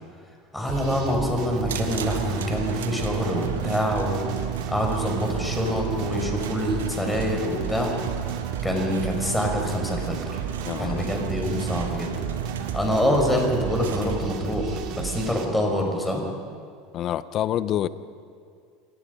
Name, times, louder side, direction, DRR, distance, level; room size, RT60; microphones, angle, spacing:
voice 1, 0.5-4.3 4.7-7.9 8.6-10.4 10.8-12.1 12.7-16.2, left 1 dB, 5° left, 1 dB, 5.8 m, -26 dB
sound 1, 0.7-15.5, right 8 dB, 55° right, 2.6 m, -33 dB
sound 2, 1.7-14.1, right 9 dB, 80° right, 1.6 m, -34 dB
voice 2, 10.7-11.1 16.9-17.9, left 11 dB, 45° left, 16 dB, 0.8 m, -27 dB
28.5 x 18.0 x 5.4 m, 2.2 s
hypercardioid pair, 80°, 0 cm